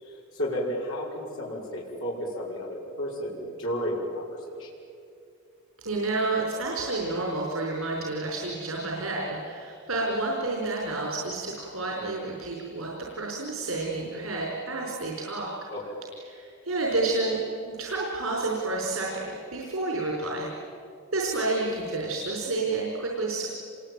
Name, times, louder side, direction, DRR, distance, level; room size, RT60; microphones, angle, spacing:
voice 1, 0.0-4.7 15.7-16.0, equal, 75° left, -4 dB, 5.7 m, -33 dB
voice 2, 5.8-15.7 16.3-17.4 17.7-20.5 21.1-23.5, right 2 dB, 85° right, -2 dB, 4.8 m, -30 dB
27.5 x 22.5 x 9.2 m, 2.5 s
head